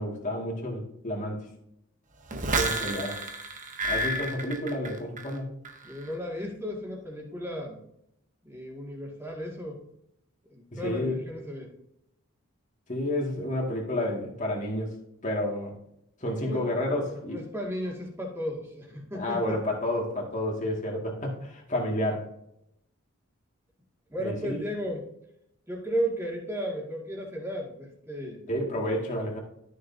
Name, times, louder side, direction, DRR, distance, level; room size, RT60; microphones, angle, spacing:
voice 1, 0.0-1.5 2.5-3.2 3.9-5.5 10.7-11.2 12.9-14.9 15.2-15.7 16.2-17.4 19.1-22.2 24.2-24.7 28.5-29.4, left 1 dB, 35° left, -1 dB, 2.1 m, -30 dB
sound 1, 2.3-5.4 5.7-6.1, right 2 dB, 35° right, 0.9 m, -31 dB
voice 2, 5.8-7.8 8.4-9.8 10.5-11.7 16.2-16.7 17.0-19.6 24.1-25.0 25.7-28.4, equal, 10° right, -2 dB, 2.2 m, -34 dB
13.0 x 6.5 x 2.8 m, 0.76 s
head